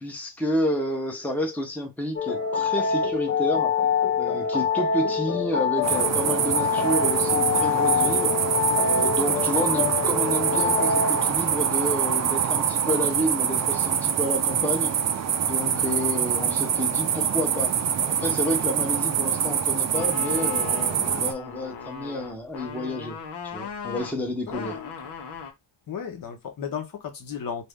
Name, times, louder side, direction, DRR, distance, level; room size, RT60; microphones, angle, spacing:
voice 1, 0.0-3.7 4.2-8.3 8.8-14.9 15.4-23.2 23.4-24.8, equal, 5° left, 0.9 m, -30 dB
sound 1, 2.2-11.4, left 6 dB, 40° left, 0.6 m, -25 dB
sound 2, 5.8-21.3, right 8 dB, 45° right, 0.5 m, -25 dB
voice 2, 15.6-15.9 24.5-25.1 25.9-27.7, left 7 dB, 55° left, 1.1 m, -35 dB
sound 3, 19.9-25.5, left 6 dB, 85° left, 1.1 m, -37 dB
2.7 x 2.6 x 3.5 m
cardioid pair, 95°, 39 cm